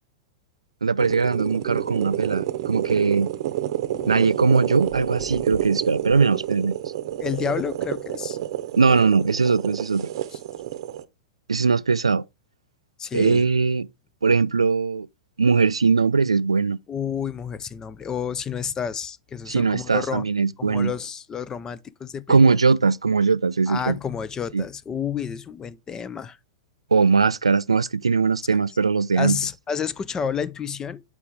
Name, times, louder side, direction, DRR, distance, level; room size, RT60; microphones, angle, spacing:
voice 1, 0.8-3.3 4.1-6.8 8.7-10.1 11.5-12.2 13.1-13.9 14.2-15.1 15.4-16.8 19.5-20.9 22.3-24.0 24.5-24.6 26.9-29.4, right 4 dB, 85° right, 0.3 m, -20 dB
sound 1, 1.0-11.0, right 12 dB, 55° right, 0.7 m, -29 dB
voice 2, 3.9-4.3 7.2-8.4 10.3-10.4 13.0-13.5 16.9-20.3 20.6-22.6 23.7-26.4 29.2-31.0, left 7 dB, 20° left, 0.5 m, -30 dB
7.0 x 4.7 x 3.4 m
figure-of-eight pair, 100°, 3 cm